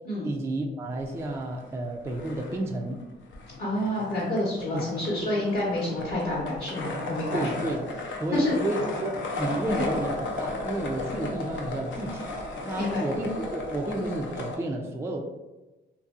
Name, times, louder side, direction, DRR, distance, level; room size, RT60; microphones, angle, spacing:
voice 1, 0.2-3.0 4.7-5.0 7.3-7.8 8.2-12.3 12.6-15.2, right 1 dB, 15° right, 1 dB, 0.3 m, -31 dB
sound 1, 1.0-14.6, left 2 dB, 70° left, 0.6 m, -35 dB
voice 2, 3.6-7.5 8.3-8.6 12.8-13.1, left 1 dB, 45° left, -6 dB, 0.8 m, -28 dB
2.6 x 2.6 x 2.4 m, 1.1 s
cardioid pair, 90°, 20 cm